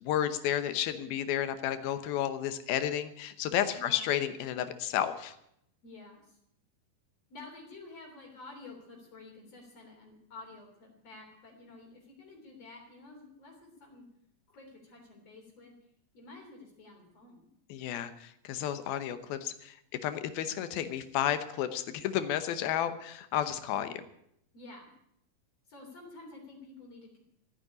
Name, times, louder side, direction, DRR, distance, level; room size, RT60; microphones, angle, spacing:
voice 1, 0.0-5.4 17.7-24.0, left 10 dB, 80° left, 11 dB, 2.8 m, -32 dB
voice 2, 5.8-6.4 7.3-14.1 14.5-15.7 16.1-17.5 24.5-24.9 25.7-27.2, left 3 dB, 45° left, 1 dB, 4.2 m, -50 dB
14.5 x 9.4 x 9.8 m, 0.75 s
omnidirectional pair, 4.3 m